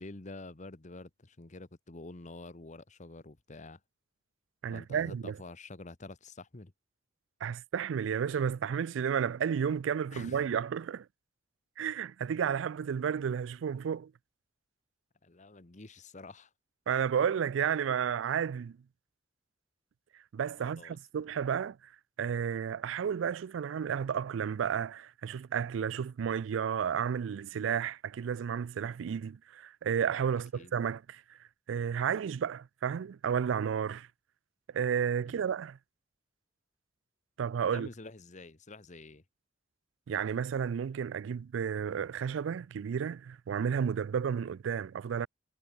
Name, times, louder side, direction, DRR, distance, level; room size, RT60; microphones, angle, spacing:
voice 1, 0.0-3.8 4.7-6.7 10.1-10.4 15.2-16.5 20.6-21.0 30.3-30.7 35.3-35.5 37.7-39.2, left 2 dB, 40° left, 1.2 m, -48 dB
voice 2, 4.6-5.4 7.4-11.1 11.8-14.1 16.9-18.8 20.3-21.8 22.2-34.1 34.7-35.8 37.4-37.9 40.1-45.3, right 7 dB, 85° right, 0.4 m, -32 dB
head